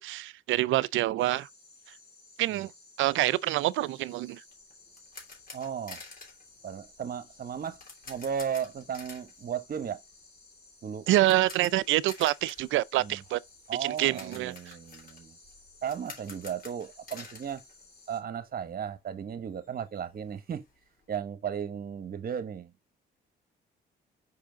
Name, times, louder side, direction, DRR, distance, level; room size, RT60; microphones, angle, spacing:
voice 1, 0.0-1.5 2.4-2.7 3.0-4.4 11.1-13.4 13.8-14.8, right 16 dB, 80° right, 0.4 m, -26 dB
sound 1, 1.2-18.2, left 3 dB, 30° left, 3.2 m, -57 dB
sound 2, 4.5-18.5 18.7-18.9 19.3-19.4 19.6-21.2, left 3 dB, 45° left, 3.0 m, -50 dB
voice 2, 5.5-6.0 6.6-7.8 8.1-10.0 10.8-11.1 13.0-13.2 13.7-15.4 15.8-17.6 18.1-20.6 21.1-22.7, right 8 dB, 50° right, 1.1 m, -35 dB
5.6 x 5.0 x 3.8 m
cardioid pair, 90°, 20 cm